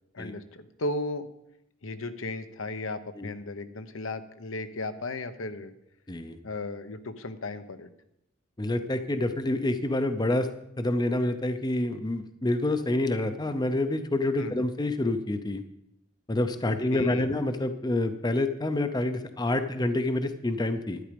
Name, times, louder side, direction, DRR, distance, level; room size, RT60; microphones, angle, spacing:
voice 1, 0.1-1.3 1.8-5.7 6.4-7.9 14.4-14.6 16.6-17.2, left 2 dB, 75° left, 10 dB, 0.9 m, -35 dB
voice 2, 8.6-10.5 10.8-15.6 16.3-21.0, left 1 dB, 20° left, 9 dB, 0.6 m, -27 dB
11.5 x 10.0 x 5.2 m, 0.79 s
head